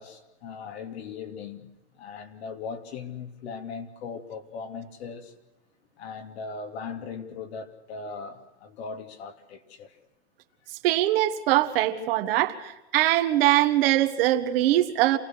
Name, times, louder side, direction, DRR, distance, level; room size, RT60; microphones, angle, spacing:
voice 1, 0.0-1.7 1.9-5.3 6.0-10.0, left 5 dB, 70° left, 5 dB, 3.1 m, -39 dB
voice 2, 10.8-12.6 12.9-15.2, right 14 dB, 55° right, 8 dB, 1.8 m, -22 dB
28.0 x 18.0 x 6.3 m, 1.0 s
supercardioid pair, 140°, 33 cm